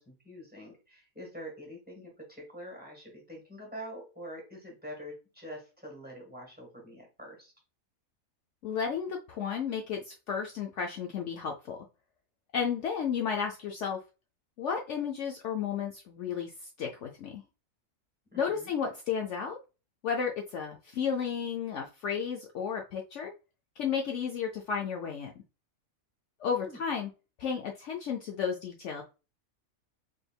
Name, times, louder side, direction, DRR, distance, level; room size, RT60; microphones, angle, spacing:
voice 1, 0.0-7.5 18.3-18.7 26.6-26.8, equal, 5° right, -1 dB, 1.4 m, -45 dB
voice 2, 8.6-11.8 12.5-14.0 14.6-16.5 16.8-17.4 18.4-19.6 20.0-23.3 23.8-25.3 26.4-27.1 27.4-29.0, left 7 dB, 65° left, 1 dB, 0.8 m, -33 dB
4.1 x 3.4 x 2.3 m, 0.30 s
omnidirectional pair, 1.5 m